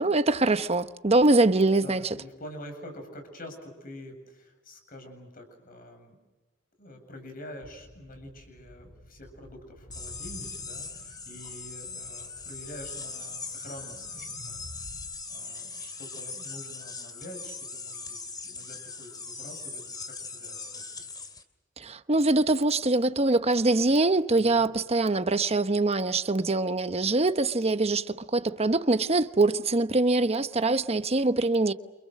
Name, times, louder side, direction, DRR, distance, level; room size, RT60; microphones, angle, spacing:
voice 1, 0.0-2.1 21.8-31.7, right 2 dB, 35° right, 1.0 m, -23 dB
voice 2, 1.8-6.2 6.8-14.6 15.3-18.2 18.4-21.1 24.3-24.7, equal, 50° left, 7.7 m, -46 dB
sound 1, 7.6-15.1, left 1 dB, 90° left, 8.0 m, -51 dB
sound 2, 9.9-21.4, left 4 dB, 20° left, 2.6 m, -40 dB
29.0 x 28.5 x 6.5 m
head